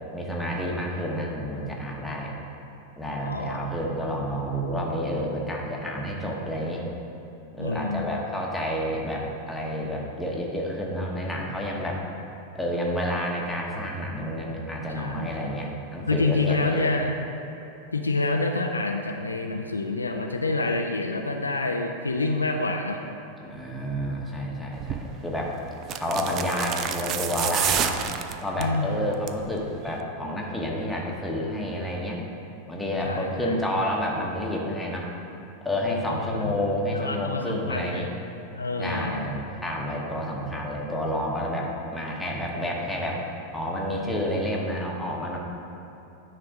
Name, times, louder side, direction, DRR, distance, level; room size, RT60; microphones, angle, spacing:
voice 1, 0.1-2.3 3.0-6.8 7.5-12.1 12.5-16.9 23.4-25.6 26.0-28.0 28.4-32.3 32.7-35.1 35.6-38.1 38.8-43.2 43.5-45.4, equal, 5° left, -3 dB, 1.1 m, -29 dB
voice 2, 3.2-3.6 7.6-8.2 14.9-15.6 16.1-17.1 17.9-23.0 28.6-29.1 33.0-33.5 36.1-36.5 36.9-38.1 38.5-39.3, left 3 dB, 80° left, 3 dB, 0.4 m, -27 dB
sound 1, 24.8-25.1 25.8-28.8 29.1-29.5 29.8-29.9, right 9 dB, 35° right, 0.3 m, -29 dB
9.7 x 3.4 x 5.1 m, 2.9 s
figure-of-eight pair, 90°, 0 cm